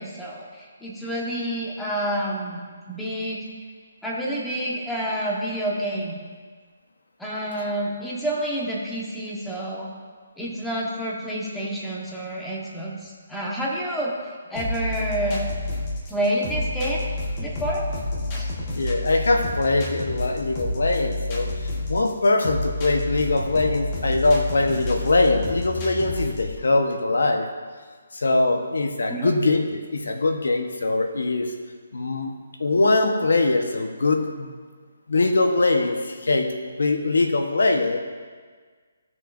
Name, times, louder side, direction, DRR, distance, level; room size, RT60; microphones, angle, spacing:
voice 1, 0.0-2.6 2.9-3.5 4.0-6.2 7.2-9.9 10.4-14.1 14.5-15.5 16.1-17.1 17.4-17.8 18.3-18.5 29.1-29.3, right 1 dB, 5° left, -5 dB, 1.3 m, -28 dB
sound 1, 14.6-26.6, left 2 dB, 25° left, 1.2 m, -29 dB
voice 2, 18.8-27.5 28.1-31.5 31.9-32.3 32.6-34.5 35.1-38.0, left 2 dB, 80° left, 4 dB, 1.1 m, -22 dB
15.0 x 6.4 x 2.6 m, 1.6 s
hypercardioid pair, 160°, 0 cm